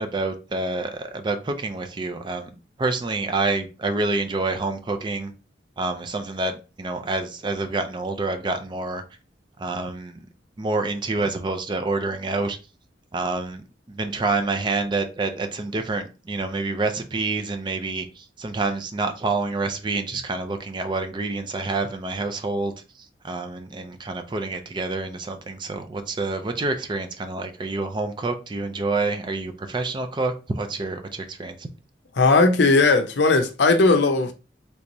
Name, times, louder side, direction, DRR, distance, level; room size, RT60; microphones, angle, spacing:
voice 1, 0.0-2.5 2.8-5.3 5.8-9.0 9.6-10.2 10.6-12.6 13.1-31.7, right 3 dB, 25° right, 0.4 m, -27 dB
voice 2, 32.2-34.3, left 3 dB, 70° left, 0.5 m, -17 dB
3.3 x 3.0 x 2.6 m
head